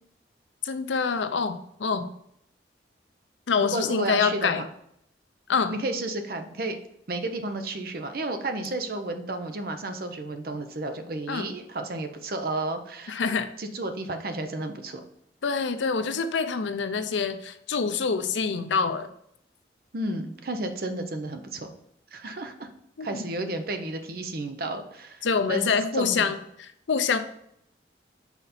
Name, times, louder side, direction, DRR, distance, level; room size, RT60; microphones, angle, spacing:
voice 1, 0.6-1.5 1.8-2.0 3.5-4.6 5.5-5.7 11.3-11.5 13.1-13.5 15.4-19.1 23.0-23.2 25.2-27.2, left 5 dB, 85° left, 9 dB, 0.6 m, -26 dB
voice 2, 3.6-4.7 5.7-6.8 7.1-13.2 13.6-15.0 19.9-21.7 22.1-22.7 23.0-26.3, right 2 dB, 55° right, 7 dB, 0.7 m, -32 dB
5.7 x 4.0 x 4.2 m, 0.73 s
head